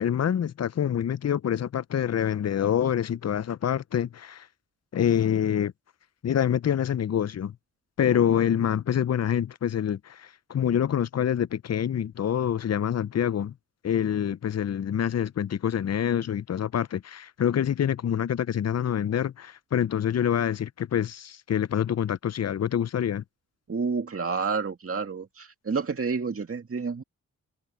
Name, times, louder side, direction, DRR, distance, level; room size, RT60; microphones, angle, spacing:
voice 1, 0.0-4.5 4.9-5.7 6.2-7.5 8.0-13.5 13.8-23.2, left 9 dB, 50° left, 0.6 m, -26 dB
voice 2, 23.7-27.0, right 5 dB, 40° right, 2.1 m, -29 dB
cardioid pair, 55°, 33 cm